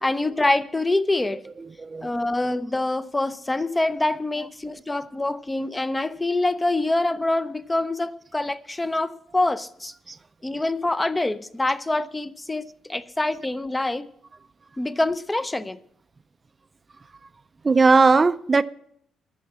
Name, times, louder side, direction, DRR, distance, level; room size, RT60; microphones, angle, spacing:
voice 1, 0.0-1.4 2.0-9.9 10.4-14.1 14.8-15.8 18.1-18.3, left 2 dB, 15° left, 0.6 m, -25 dB
voice 2, 1.8-2.1 10.1-10.2 17.6-18.6, right 4 dB, 30° right, 0.4 m, -18 dB
10.0 x 6.5 x 8.5 m
cardioid pair, 90°, 0 cm